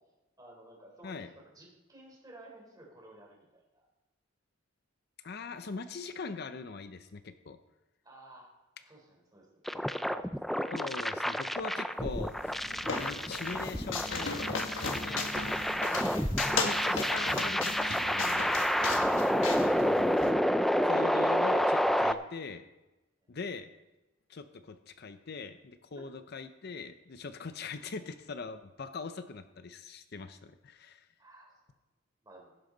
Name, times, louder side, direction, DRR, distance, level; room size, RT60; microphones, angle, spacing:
voice 1, 0.4-3.9 8.0-8.5 8.8-9.8 15.1-15.6 25.9-26.1 31.2-31.5 32.2-32.5, right 1 dB, 20° right, -1 dB, 3.7 m, -54 dB
voice 2, 5.2-7.6 10.7-12.7 13.0-14.6 15.0-15.3 16.5-18.7 19.6-20.2 20.8-22.6 23.3-23.7 24.3-31.1, left 4 dB, 50° left, 9 dB, 0.6 m, -41 dB
sound 1, 9.7-22.1, equal, ahead, 0.3 m, -29 dB
sound 2, 12.1-20.3, left 4 dB, 70° left, 1.4 m, -37 dB
16.0 x 11.5 x 3.9 m, 1.0 s
head